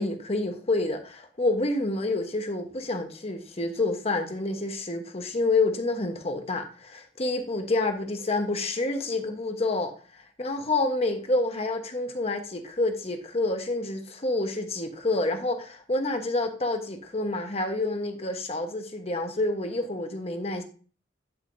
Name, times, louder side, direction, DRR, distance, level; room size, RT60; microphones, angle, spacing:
voice 1, 0.0-9.9 10.4-20.6, left 2 dB, 35° left, 1.1 m, -28 dB
10.5 x 5.7 x 2.6 m
head